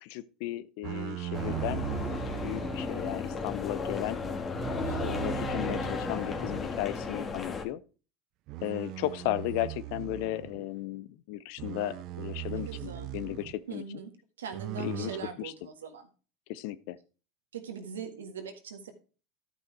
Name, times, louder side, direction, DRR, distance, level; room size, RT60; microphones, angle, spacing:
voice 1, 0.0-1.9 2.4-4.2 5.0-7.8 8.6-13.8 14.8-15.1 15.4-15.5 16.5-17.0, left 14 dB, 65° left, 0.6 m, -35 dB
sound 1, 0.8-3.2 4.2-6.7 7.1-7.4 8.5-10.6 11.6-13.6 14.5-15.3, right 15 dB, 55° right, 0.6 m, -39 dB
sound 2, 1.3-7.7, left 4 dB, 30° left, 1.7 m, -34 dB
voice 2, 4.8-5.2 12.4-13.1 13.7-14.1 14.4-16.1 17.5-18.9, right 6 dB, 90° right, 1.6 m, -41 dB
12.5 x 5.6 x 4.6 m
hypercardioid pair, 85°, 0 cm